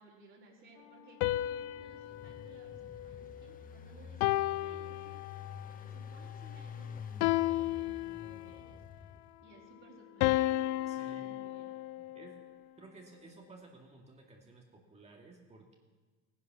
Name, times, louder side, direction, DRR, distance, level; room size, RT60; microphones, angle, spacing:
voice 1, 0.0-9.1 9.4-11.8, right 4 dB, 40° right, -3 dB, 3.7 m, -59 dB
sound 1, 1.2-3.6 4.2-5.7 7.2-8.7 10.2-12.5, left 16 dB, 85° left, 0.5 m, -33 dB
Engine, 1.4-9.5, left 7 dB, 30° left, 0.7 m, -48 dB
voice 2, 10.9-11.3 12.0-12.4 12.8-15.8, right 3 dB, 20° right, 0 dB, 2.1 m, -55 dB
16.5 x 10.5 x 6.1 m, 1.4 s
cardioid pair, 125°, 30 cm